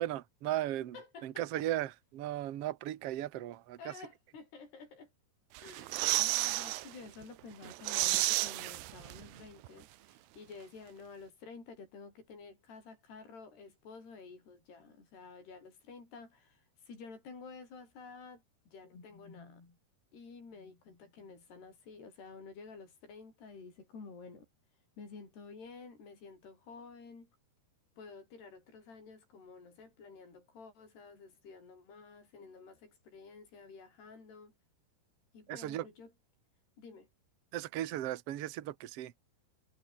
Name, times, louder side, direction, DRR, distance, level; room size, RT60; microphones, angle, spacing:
voice 1, 0.0-1.0 1.2-3.9 5.6-5.8 35.5-35.9 37.5-39.1, right 13 dB, 70° right, 1.4 m, -36 dB
voice 2, 0.9-1.6 3.8-5.1 5.6-19.8 20.1-24.5 25.0-27.3 28.0-34.5 35.3-36.1 36.8-37.1, left 4 dB, 75° left, 9.8 m, -51 dB
sound 1, 5.6-6.9 7.2-7.3 7.6-9.4 9.7-9.8, right 18 dB, 85° right, 2.9 m, -32 dB
omnidirectional pair, 4.7 m